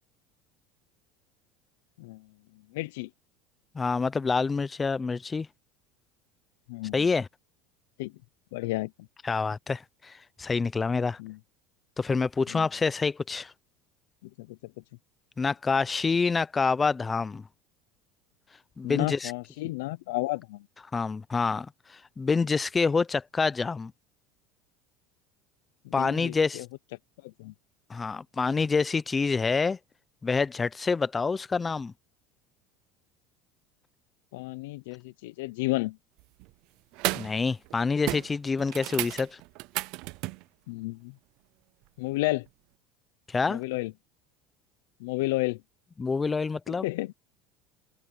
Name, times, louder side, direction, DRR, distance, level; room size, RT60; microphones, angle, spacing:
voice 1, 2.7-3.1 6.7-7.0 8.0-8.1 8.5-8.9 11.2-11.4 12.5-12.6 14.4-14.6 18.8-20.7 25.8-26.6 27.2-27.5 34.3-36.0 40.7-41.1 42.0-42.5 43.5-43.9 45.0-45.6 46.7-47.1, left 21 dB, 85° left, 0.7 m, -32 dB
voice 2, 3.7-5.5 6.9-7.3 9.2-11.2 12.0-13.5 15.4-17.4 18.8-19.3 20.9-23.9 25.9-26.6 27.9-29.8 30.2-31.9 37.1-39.4 43.3-43.6 46.0-46.9, left 4 dB, 20° left, 0.7 m, -27 dB
sound 1, 36.2-36.5 36.9-37.4 37.6-37.8 38.1-40.4 42.5-42.6, right 23 dB, 65° right, 0.5 m, -33 dB
supercardioid pair, 120°, 0 cm